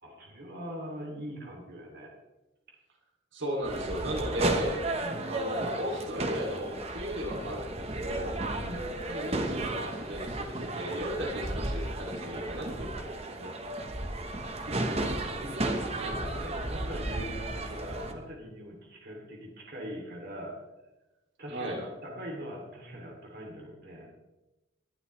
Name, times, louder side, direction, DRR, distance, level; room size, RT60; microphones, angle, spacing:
voice 1, 0.0-2.1 5.0-5.3 8.6-8.9 14.5-20.6 21.4-24.1, equal, 50° right, 0 dB, 2.8 m, -42 dB
voice 2, 3.3-4.8 5.2-8.4 9.1-13.0 13.4-13.5 21.5-21.8, equal, 75° right, 0 dB, 2.8 m, -35 dB
sound 1, 3.6-18.1, right 2 dB, 30° right, 1.1 m, -34 dB
19.5 x 11.5 x 3.2 m, 1.0 s
head